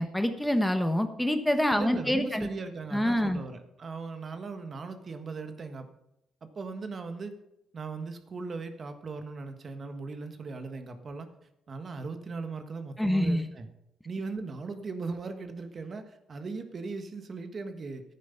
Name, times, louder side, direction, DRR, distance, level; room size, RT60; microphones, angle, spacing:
voice 1, 0.0-2.5 2.9-3.4 13.0-13.5, equal, 5° left, 8 dB, 1.1 m, -26 dB
voice 2, 1.7-5.9 6.4-7.3 7.7-11.3 11.7-13.7 14.0-18.0, right 4 dB, 45° right, 8 dB, 1.5 m, -38 dB
11.0 x 9.2 x 5.8 m, 0.83 s
cardioid pair, 90°, 0 cm